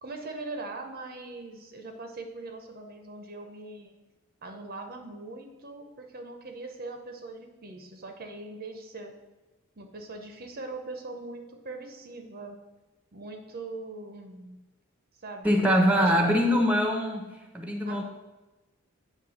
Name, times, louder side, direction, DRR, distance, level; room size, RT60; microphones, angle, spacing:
voice 1, 0.0-3.9 4.4-9.1 9.8-12.6 13.1-14.6 15.2-16.3 17.9-18.0, right 2 dB, 45° right, 5 dB, 0.7 m, -41 dB
voice 2, 15.4-17.3 17.5-18.0, equal, 5° right, 3 dB, 0.8 m, -23 dB
8.6 x 3.3 x 6.3 m, 1.1 s
head